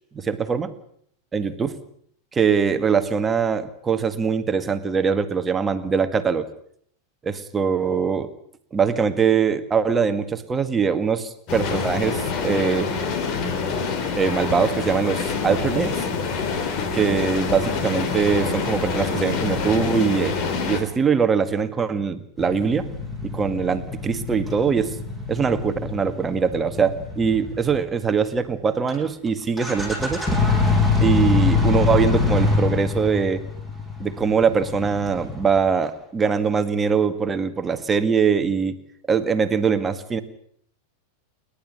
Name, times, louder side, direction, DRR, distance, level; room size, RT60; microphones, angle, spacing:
voice 1, 0.1-0.7 1.3-1.7 2.3-6.5 7.2-8.3 8.7-12.9 14.2-16.1 16.9-20.4 20.7-22.9 23.2-24.9 25.3-30.2 31.0-33.4 34.0-38.8 39.1-40.2, right 6 dB, 15° right, 10 dB, 1.9 m, -22 dB
sound 1, 11.5-20.8, left 5 dB, 40° left, 4.0 m, -26 dB
sound 2, 22.4-27.9 28.9-29.0 29.3-29.4 29.6-35.7, left 4 dB, 10° left, 7.3 m, -24 dB
29.0 x 12.0 x 9.9 m, 0.65 s
figure-of-eight pair, 90°, 0 cm